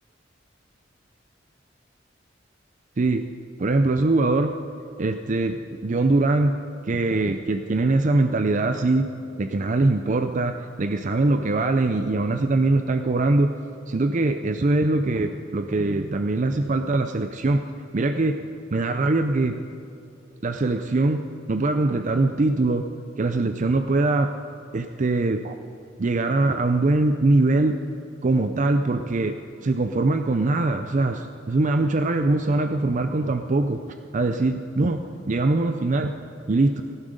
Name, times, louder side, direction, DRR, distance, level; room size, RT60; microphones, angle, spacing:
voice 1, 3.6-4.5 5.0-6.6 6.8-9.1 9.4-13.5 13.9-17.6 17.9-19.6 20.4-21.2 21.5-22.8 23.2-24.3 24.7-25.6 26.0-27.7 28.2-33.8 34.1-36.1 36.5-36.8, right 2 dB, 40° right, 8 dB, 0.5 m, -22 dB
17.5 x 11.5 x 5.1 m, 2.8 s
head